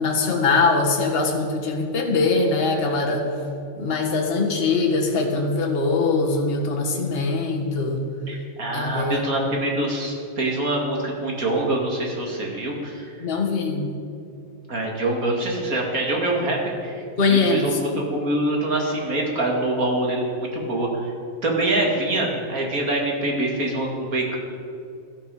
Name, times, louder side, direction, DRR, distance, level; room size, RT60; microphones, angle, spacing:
voice 1, 0.0-3.3 3.7-8.0 8.7-9.2 13.2-13.9 17.2-17.8, left 3 dB, 30° left, 0 dB, 1.6 m, -22 dB
voice 2, 8.3-13.2 14.7-17.0 17.3-21.1 21.4-24.4, right 1 dB, 45° right, 0 dB, 2.7 m, -25 dB
16.5 x 12.0 x 4.9 m, 2.5 s
omnidirectional pair, 2.2 m